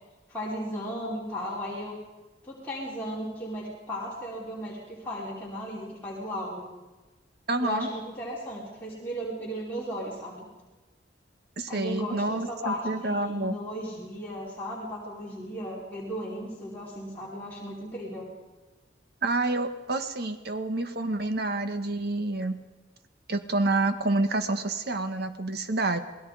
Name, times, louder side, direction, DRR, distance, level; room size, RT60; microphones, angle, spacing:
voice 1, 0.3-2.0 2.4-6.7 7.6-10.4 11.7-18.3, equal, 10° left, -7 dB, 5.0 m, -35 dB
voice 2, 7.5-7.9 11.6-13.6 19.2-22.6 23.3-26.0, right 2 dB, 60° right, 8 dB, 1.8 m, -28 dB
28.0 x 20.0 x 5.1 m, 1.2 s
head